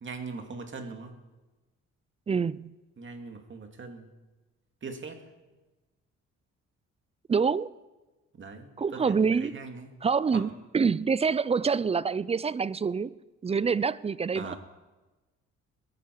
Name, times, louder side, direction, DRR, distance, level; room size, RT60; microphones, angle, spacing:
voice 1, 0.0-1.1 3.0-4.1 4.8-5.2 8.4-9.0 9.4-9.9 10.3-10.4 14.3-14.6, right 4 dB, 40° right, 2.3 m, -40 dB
voice 2, 2.3-2.7 7.3-7.7 8.8-9.6 10.0-13.2 13.4-14.5, right 5 dB, 20° right, 0.4 m, -26 dB
21.5 x 10.5 x 4.6 m
cardioid pair, 90°, 30 cm